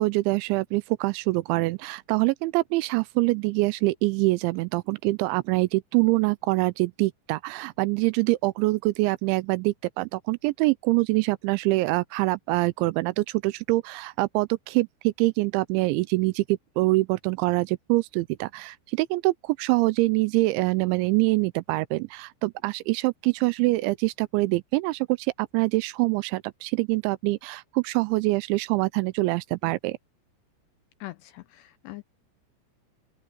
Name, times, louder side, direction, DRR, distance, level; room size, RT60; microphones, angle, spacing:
voice 1, 0.0-30.0, right 22 dB, 85° right, 2.8 m, -25 dB
voice 2, 31.0-32.0, left 18 dB, 85° left, 2.5 m, -42 dB
open air
omnidirectional pair, 5.5 m